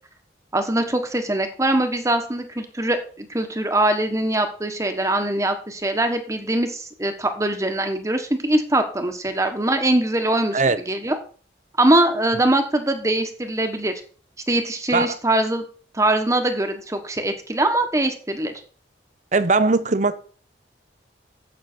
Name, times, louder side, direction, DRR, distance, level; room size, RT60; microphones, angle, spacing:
voice 1, 0.5-11.2 11.8-14.0 14.5-15.6 15.9-18.5, right 1 dB, 15° right, 7 dB, 1.3 m, -22 dB
voice 2, 19.3-20.2, right 3 dB, 40° right, 14 dB, 0.7 m, -19 dB
11.5 x 8.1 x 4.5 m, 0.42 s
head